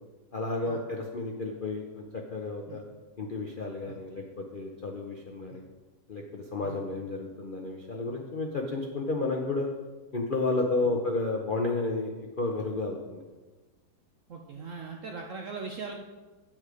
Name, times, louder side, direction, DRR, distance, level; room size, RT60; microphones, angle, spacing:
voice 1, 0.3-2.8 3.2-5.6 6.1-9.7 10.1-12.1 12.4-13.2, left 3 dB, 80° left, 1 dB, 0.4 m, -32 dB
voice 2, 14.3-16.0, right 4 dB, 65° right, 2 dB, 0.7 m, -40 dB
8.3 x 7.1 x 4.9 m, 1.2 s
omnidirectional pair, 2.2 m